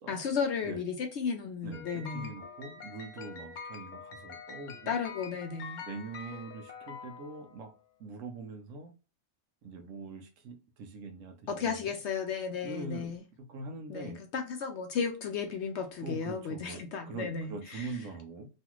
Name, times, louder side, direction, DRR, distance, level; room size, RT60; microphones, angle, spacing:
voice 1, 0.1-2.3 4.9-5.8 11.5-13.2 13.9-17.9, left 6 dB, 65° left, 0.7 m, -34 dB
voice 2, 1.6-5.0 5.8-7.7 8.0-8.9 9.6-11.9 12.6-14.2 16.0-18.5, right 3 dB, 70° right, 1.0 m, -43 dB
sound 1, 1.7-7.7, left 5 dB, 90° left, 0.4 m, -46 dB
3.1 x 2.4 x 2.9 m
omnidirectional pair, 1.5 m